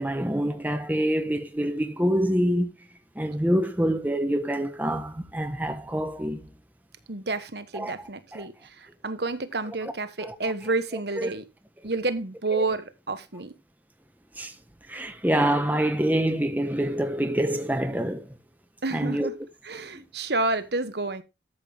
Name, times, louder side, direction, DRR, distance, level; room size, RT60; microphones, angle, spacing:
voice 1, 0.0-2.7 3.2-6.4 7.7-7.9 8.3-8.4 10.2-10.3 11.2-11.3 14.4-14.5 14.9-18.3 18.9-19.3, right 1 dB, 10° right, 1.3 m, -26 dB
voice 2, 7.1-11.4 11.8-13.5 18.8-19.3 19.6-21.2, right 3 dB, 65° right, 1.4 m, -30 dB
13.5 x 7.3 x 3.6 m
head